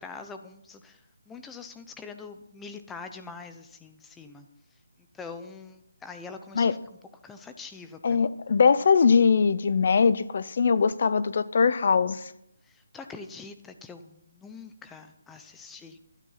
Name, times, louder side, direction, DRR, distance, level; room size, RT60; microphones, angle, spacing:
voice 1, 0.0-4.5 5.1-6.8 7.2-8.3 12.6-16.0, left 4 dB, 5° left, 7 dB, 0.7 m, -44 dB
voice 2, 8.0-12.3, left 5 dB, 45° left, 15 dB, 0.6 m, -21 dB
12.5 x 9.8 x 5.7 m, 0.77 s
hypercardioid pair, 170°, 0 cm